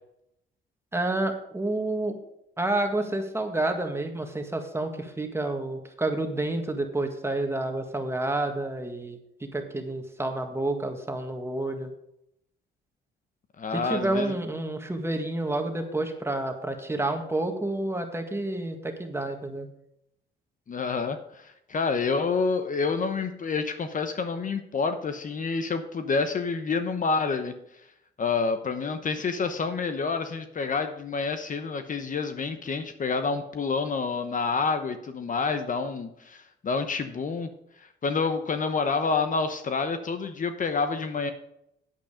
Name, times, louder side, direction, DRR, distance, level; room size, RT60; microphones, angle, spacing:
voice 1, 0.9-2.1 2.6-9.2 9.5-11.9 13.7-19.7, right 2 dB, 15° right, 4 dB, 1.7 m, -29 dB
voice 2, 13.6-14.3 20.7-27.5 28.2-37.5 37.8-41.3, left 4 dB, 40° left, 8 dB, 0.9 m, -28 dB
9.0 x 8.4 x 5.0 m, 0.79 s
cardioid pair, 90°, 20 cm